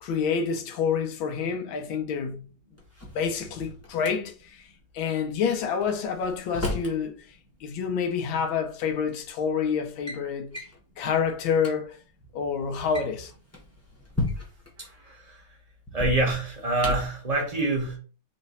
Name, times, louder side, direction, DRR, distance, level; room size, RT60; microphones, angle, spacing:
voice 1, 0.0-2.5 3.1-4.6 4.9-10.5 11.0-12.0 12.3-13.3, left 6 dB, 85° left, 1.5 m, -28 dB
Drawer open or close, 2.8-4.1 5.8-7.0 8.3-8.4 9.2-9.4 9.8-10.2 10.5-10.8 11.3-11.4 11.6-11.7 12.7-14.7 15.9-17.2, left 2 dB, 15° left, 0.5 m, -34 dB
voice 2, 14.8-15.5 15.9-18.0, right 2 dB, 60° right, 0.4 m, -26 dB
3.2 x 3.2 x 4.0 m
omnidirectional pair, 2.1 m